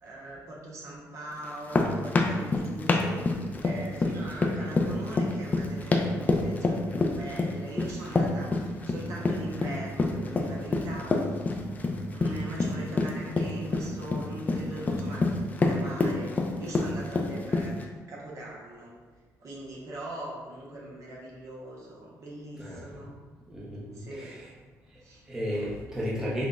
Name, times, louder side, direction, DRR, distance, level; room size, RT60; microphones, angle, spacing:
voice 1, 0.0-11.4 12.1-16.3 16.6-17.8 18.1-18.9 19.4-23.2 23.9-24.3 25.0-25.2, right 1 dB, 55° right, -4 dB, 0.9 m, -41 dB
sound 1, 1.4-17.8, left 3 dB, 25° left, 0.4 m, -27 dB
voice 2, 22.5-22.9 23.5-24.5 25.3-26.5, equal, 10° right, -7 dB, 0.7 m, -34 dB
5.8 x 2.2 x 2.4 m, 1.3 s
cardioid pair, 125°, 6 cm